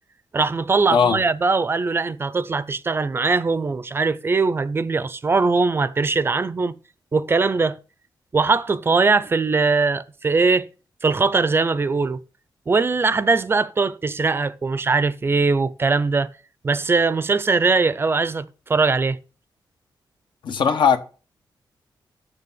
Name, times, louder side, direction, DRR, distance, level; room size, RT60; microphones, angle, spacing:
voice 1, 0.3-6.8 7.1-7.8 8.3-10.7 11.0-12.2 12.7-16.3 16.6-19.2, right 4 dB, 30° right, 0.4 m, -21 dB
voice 2, 20.4-21.0, left 6 dB, 75° left, 1.1 m, -18 dB
6.8 x 6.7 x 7.1 m
wide cardioid pair, 155°, 8 cm